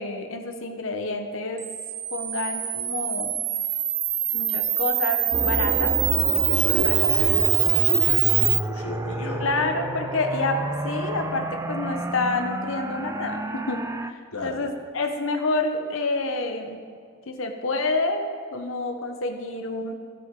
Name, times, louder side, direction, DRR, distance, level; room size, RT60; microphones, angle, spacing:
voice 1, 0.0-1.6 2.1-3.3 4.3-6.0 6.8-7.1 9.4-16.8 17.3-18.2 18.5-19.9, left 3 dB, 65° left, 5 dB, 1.0 m, -28 dB
Camera, 1.6-8.6, right 12 dB, 75° right, 0.8 m, -23 dB
sound 1, 5.3-14.1, right 2 dB, 15° right, 0.3 m, -30 dB
voice 2, 6.5-9.8 14.3-14.6, left 1 dB, 85° left, 0 dB, 1.6 m, -33 dB
16.5 x 6.3 x 3.8 m, 2.2 s
head